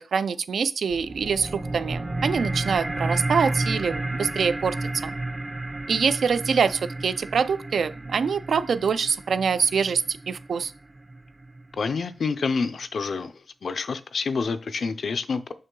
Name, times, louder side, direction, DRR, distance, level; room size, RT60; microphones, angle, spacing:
voice 1, 0.0-4.8 5.0-5.2 5.9-10.7, right 6 dB, 80° right, 0.4 m, -25 dB
sound 1, 0.9-11.9, right 2 dB, 20° right, 0.4 m, -32 dB
voice 2, 11.8-13.3 13.6-15.5, left 4 dB, 60° left, 0.5 m, -28 dB
6.1 x 5.5 x 3.8 m
wide cardioid pair, 150°, 0 cm